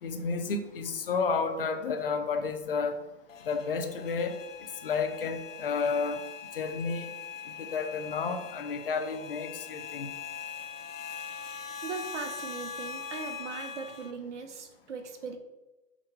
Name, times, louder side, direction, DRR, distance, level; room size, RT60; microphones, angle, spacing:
voice 1, 0.0-3.0 3.5-4.4 4.8-6.2 6.5-7.0 7.6-10.1, left 5 dB, 45° left, 6 dB, 0.7 m, -31 dB
sound 1, 3.3-14.1, left 6 dB, 80° left, 0.8 m, -42 dB
voice 2, 11.8-15.4, right 5 dB, 65° right, 7 dB, 1.0 m, -39 dB
5.9 x 5.3 x 3.3 m, 1.1 s
hypercardioid pair, 175°, 38 cm